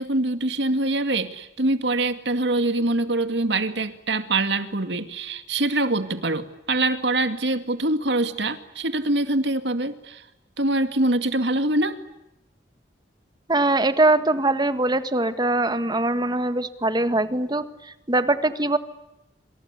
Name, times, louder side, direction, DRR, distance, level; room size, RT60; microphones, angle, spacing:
voice 1, 0.0-10.2 10.6-12.0, right 2 dB, 75° right, 10 dB, 2.2 m, -24 dB
voice 2, 13.5-18.8, right 2 dB, 25° right, 11 dB, 1.7 m, -22 dB
27.0 x 27.0 x 8.3 m, 0.89 s
head